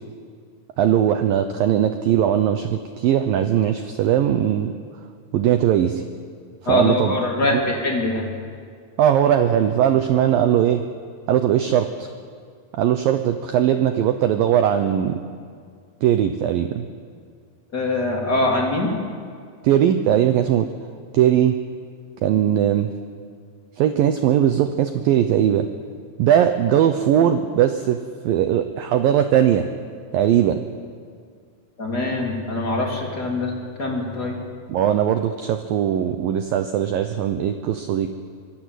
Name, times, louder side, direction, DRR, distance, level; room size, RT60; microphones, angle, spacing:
voice 1, 0.8-4.7 5.3-6.0 6.7-7.2 7.5-7.6 9.0-10.8 11.3-12.1 12.7-15.2 16.0-16.9 19.6-20.7 21.1-21.5 22.2-22.9 23.8-25.7 26.2-28.0 28.2-29.7 30.1-30.6 34.7-38.1, right 10 dB, 85° right, 8 dB, 2.0 m, -19 dB
voice 2, 6.6-8.3 17.7-18.9 31.8-33.5 33.8-34.4, left 2 dB, 25° left, -1 dB, 3.5 m, -23 dB
25.0 x 22.0 x 8.3 m, 2.1 s
omnidirectional pair, 5.4 m